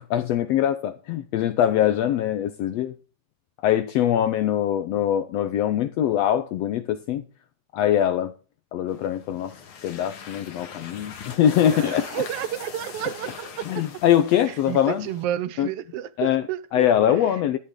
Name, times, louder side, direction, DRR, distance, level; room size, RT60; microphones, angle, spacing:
voice 1, 0.0-2.9 3.6-7.2 7.7-8.3 8.7-9.5 9.8-12.1 13.6-15.1 15.6-15.7 16.2-16.4 16.7-17.6, left 10 dB, 70° left, 1.6 m, -22 dB
sound 1, 8.9-15.2, left 6 dB, 50° left, 2.1 m, -41 dB
voice 2, 11.7-13.8 14.5-16.9, right 11 dB, 80° right, 1.3 m, -31 dB
12.0 x 11.0 x 3.8 m
omnidirectional pair, 3.5 m